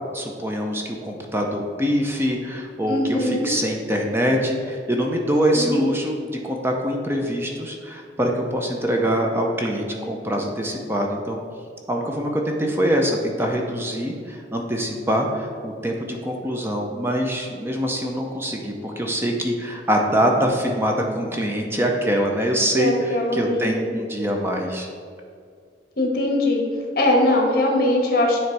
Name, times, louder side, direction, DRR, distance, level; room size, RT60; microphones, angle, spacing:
voice 1, 0.1-11.4 11.9-24.9, equal, 15° right, 1 dB, 0.6 m, -24 dB
voice 2, 2.9-3.5 5.5-5.7 22.8-23.7 26.0-26.6 26.9-28.4, left 1 dB, 55° left, 0 dB, 1.2 m, -21 dB
9.3 x 3.2 x 4.7 m, 2.2 s
head